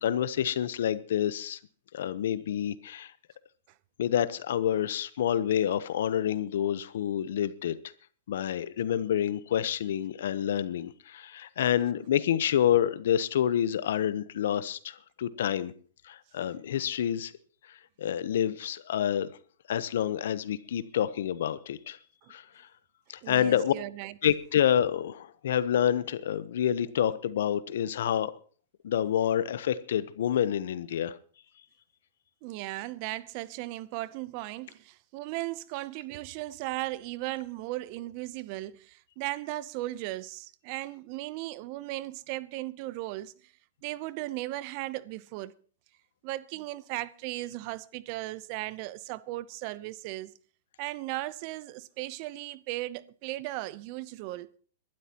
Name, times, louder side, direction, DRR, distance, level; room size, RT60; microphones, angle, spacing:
voice 1, 0.0-1.6 1.9-3.1 4.0-7.8 8.3-15.7 16.0-17.3 17.7-19.3 19.7-22.0 22.3-22.7 23.1-23.7 24.2-28.3 28.8-31.2, left 10 dB, 70° left, 0.9 m, -28 dB
voice 2, 23.2-24.1 32.4-43.5 43.8-45.5 46.2-50.4 50.8-54.5, right 18 dB, 45° right, 0.7 m, -37 dB
22.5 x 12.0 x 3.0 m
hypercardioid pair, 125°, 0 cm